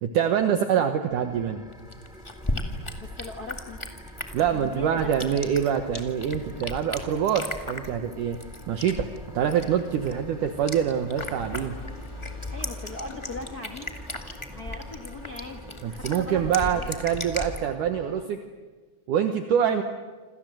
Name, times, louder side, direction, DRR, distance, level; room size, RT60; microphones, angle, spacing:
voice 1, 0.0-1.6 4.3-8.4 8.7-9.1 9.3-11.8 15.8-18.4 19.1-19.8, right 8 dB, 65° right, 7 dB, 2.4 m, -25 dB
sound 1, 1.1-18.2, equal, ahead, 1.6 m, -48 dB
sound 2, 1.7-17.6, left 1 dB, 25° left, 0.5 m, -37 dB
voice 2, 3.0-3.8 4.4-5.2 12.5-14.0 14.5-16.9, left 3 dB, 55° left, 4 dB, 1.0 m, -40 dB
27.5 x 27.0 x 7.8 m, 1.4 s
omnidirectional pair, 4.5 m